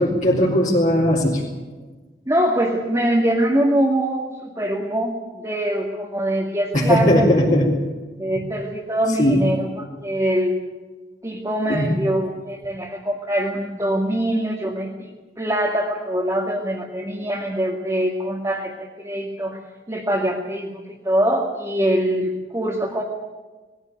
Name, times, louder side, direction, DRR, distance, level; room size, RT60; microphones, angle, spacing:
voice 1, 0.0-1.4 6.7-7.7 8.3-8.4 9.2-9.4 11.7-11.9, equal, 45° left, -4 dB, 4.1 m, -18 dB
voice 2, 2.3-7.3 8.2-10.6 11.2-14.9 15.4-19.6 19.9-23.0, right 1 dB, 15° right, -2 dB, 2.2 m, -23 dB
20.5 x 16.0 x 9.5 m, 1.3 s
head